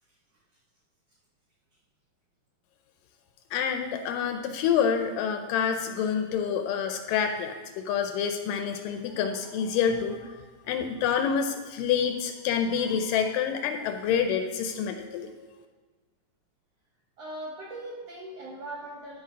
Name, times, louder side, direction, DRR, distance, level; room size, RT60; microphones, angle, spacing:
voice 1, 3.5-15.3, left 7 dB, 80° left, 6 dB, 2.1 m, -27 dB
voice 2, 17.2-19.2, right 1 dB, 70° right, -3 dB, 1.6 m, -39 dB
12.0 x 4.7 x 5.1 m, 1.3 s
omnidirectional pair, 4.2 m